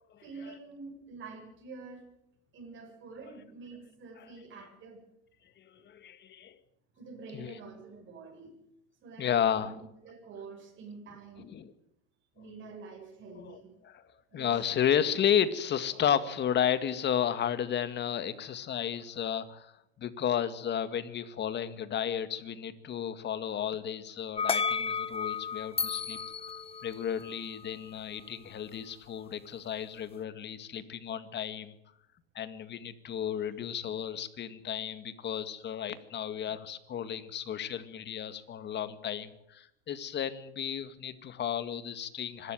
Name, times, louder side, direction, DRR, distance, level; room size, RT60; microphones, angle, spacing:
voice 1, 0.2-2.1 2.5-5.0 5.7-5.8 7.0-8.6 9.0-11.5 12.3-13.7 14.3-14.6, right 4 dB, 40° right, 0 dB, 7.3 m, -47 dB
voice 2, 5.9-6.6 7.3-7.6 9.2-9.7 11.5-11.7 13.4-13.6 13.8-14.0 14.3-19.7 20.0-26.2 26.8-31.7 32.4-42.5, left 9 dB, 35° left, 12 dB, 2.0 m, -33 dB
sound 1, 24.4-27.6, left 5 dB, 20° left, 1.1 m, -33 dB
25.0 x 13.0 x 9.1 m, 0.80 s
supercardioid pair, 115°, 31 cm